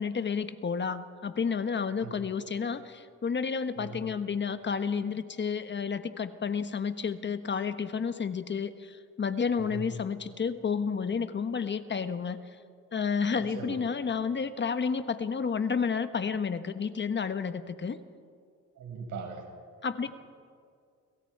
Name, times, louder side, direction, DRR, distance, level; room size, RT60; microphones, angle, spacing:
voice 1, 0.0-12.4 12.9-18.0 19.8-20.1, left 6 dB, 40° left, 10 dB, 1.2 m, -31 dB
voice 2, 13.4-13.8 18.8-19.5, right 5 dB, 75° right, 3 dB, 5.5 m, -40 dB
30.0 x 25.0 x 4.7 m, 2.1 s
cardioid pair, 90°, 30 cm